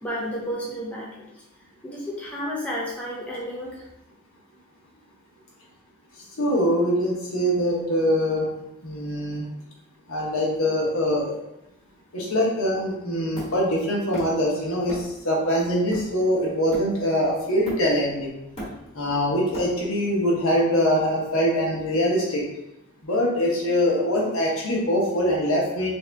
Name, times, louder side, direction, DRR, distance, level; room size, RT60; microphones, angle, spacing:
voice 1, 0.0-1.3 1.8-3.8, equal, 5° left, -5 dB, 0.6 m, -31 dB
voice 2, 6.4-8.5 8.8-9.5 10.1-11.4 12.1-18.3 18.9-22.4 23.0-25.9, equal, 70° left, -4 dB, 1.1 m, -23 dB
Hammer, 13.4-14.5 14.9-15.2 15.6-17.2 17.7-18.1 18.4-20.1, equal, 25° left, 1.2 m, -38 dB
3.5 x 2.7 x 3.4 m, 0.87 s
head